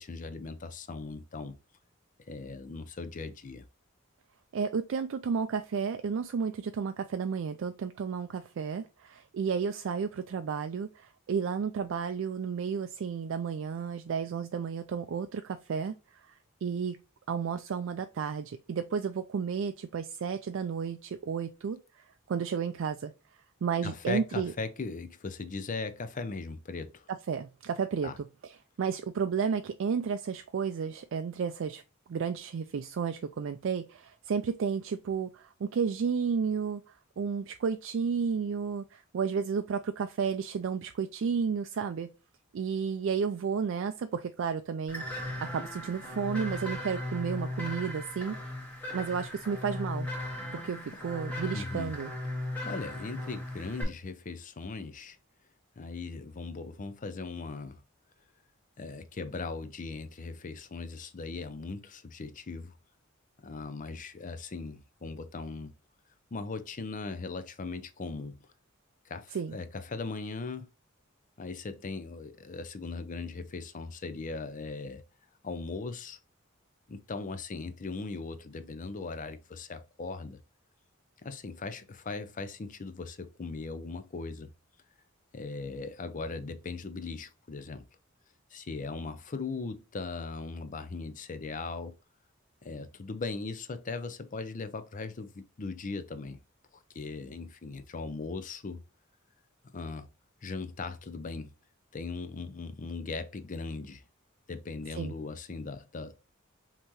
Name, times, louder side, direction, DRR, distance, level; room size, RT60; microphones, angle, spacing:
voice 1, 0.0-1.6 2.3-3.6 23.8-27.0 28.0-28.2 51.5-52.0 52.6-55.2 55.8-57.8 58.8-62.7 63.4-65.7 66.3-68.5 69.1-70.7 71.4-75.0 75.4-76.2 76.9-80.4 81.2-84.5 85.3-87.9 88.5-92.0 92.6-96.4 96.7-98.8 99.7-100.1 100.4-101.6 101.9-104.0 104.5-106.2, left 3 dB, 40° left, 0.5 m, -39 dB
voice 2, 4.5-15.9 16.3-17.0 17.3-21.8 22.3-23.1 23.6-24.5 27.1-28.1 28.4-31.8 32.1-36.8 37.2-42.1 42.5-45.1 45.4-48.4 48.9-50.1 50.5-52.1 69.3-69.6 105.0-105.1, right 6 dB, 65° right, 0.4 m, -32 dB
sound 1, 44.9-53.8, left 1 dB, 5° left, 1.6 m, -37 dB
5.5 x 2.9 x 3.0 m
head